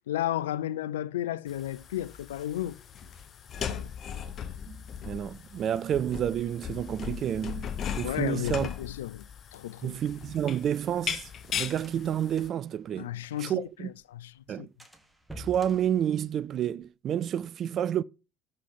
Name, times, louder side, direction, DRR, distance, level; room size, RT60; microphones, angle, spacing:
voice 1, 0.1-2.8 3.6-3.9 8.0-9.3 9.5-10.0 13.0-14.3 14.6-14.7, left 13 dB, 75° left, 0.4 m, -33 dB
sound 1, 1.5-12.5, left 8 dB, 45° left, 0.8 m, -38 dB
voice 2, 4.7-7.7 8.0-8.7 9.8-13.1 13.4-13.9 14.5-14.7 15.4-18.0, right 10 dB, 45° right, 0.3 m, -30 dB
sound 2, 10.3-13.7 14.0-14.1 14.4-14.5 14.8-16.8, right 1 dB, 5° right, 1.6 m, -49 dB
7.7 x 4.3 x 5.6 m
hypercardioid pair, 65°, 0 cm